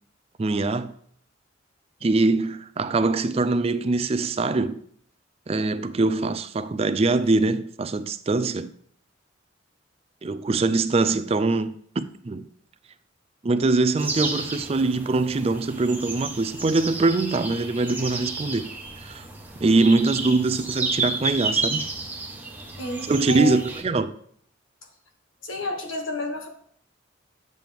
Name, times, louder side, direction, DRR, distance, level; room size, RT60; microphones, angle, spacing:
voice 1, 0.4-0.9 2.0-4.8 5.5-8.7 10.2-12.5 13.4-18.7 19.0-19.3 19.6-21.9 23.1-24.1, right 3 dB, 30° right, 0.4 m, -23 dB
sound 1, 14.0-23.8, right 3 dB, 10° right, 1.1 m, -32 dB
voice 2, 22.8-23.6 25.4-26.5, left 1 dB, 85° left, 1.5 m, -30 dB
9.0 x 7.5 x 3.5 m
head